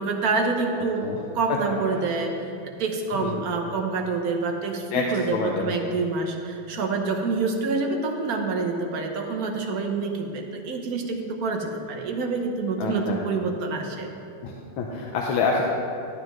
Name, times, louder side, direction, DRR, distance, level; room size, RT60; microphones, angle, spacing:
voice 1, 0.0-14.1, right 3 dB, 55° right, 2 dB, 1.1 m, -27 dB
voice 2, 5.3-5.8 12.8-13.2 14.4-15.6, left 5 dB, 85° left, -1 dB, 1.6 m, -27 dB
13.0 x 9.5 x 3.0 m, 2.7 s
omnidirectional pair, 2.2 m